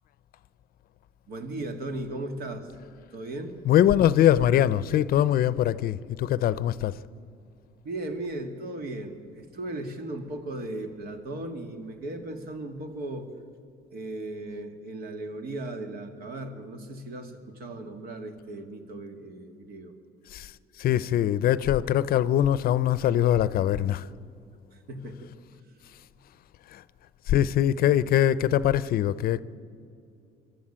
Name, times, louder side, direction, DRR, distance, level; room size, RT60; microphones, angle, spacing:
voice 1, 1.3-2.7 3.1-3.6 7.8-13.3 13.9-19.9 24.7-25.3 27.8-27.9, right 2 dB, 65° right, 2.2 m, -37 dB
voice 2, 3.6-7.0 20.3-20.5 20.8-24.1 26.7-26.8 27.3-29.4, left 11 dB, 60° left, 0.6 m, -22 dB
22.5 x 13.0 x 8.7 m
cardioid pair, 110°, 17 cm